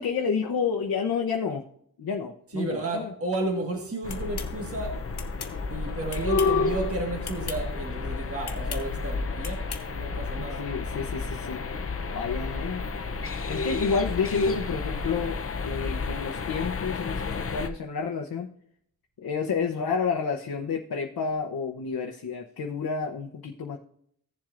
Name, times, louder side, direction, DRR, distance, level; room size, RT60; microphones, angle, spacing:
voice 1, 0.0-1.7 2.0-3.1 10.4-11.6 12.1-12.8 13.5-18.5 19.2-23.8, left 6 dB, 65° left, 0.9 m, -30 dB
voice 2, 2.5-5.0 5.7-10.6, right 2 dB, 35° right, 1.6 m, -32 dB
sound 1, 4.0-17.7, left 4 dB, 35° left, 0.6 m, -30 dB
sound 2, 4.1-4.5 5.2-5.5 6.1-6.6 7.2-7.6 8.4-8.8 9.4-9.8, left 7 dB, 80° left, 1.1 m, -38 dB
15.5 x 7.3 x 2.5 m
wide cardioid pair, 100°, 39 cm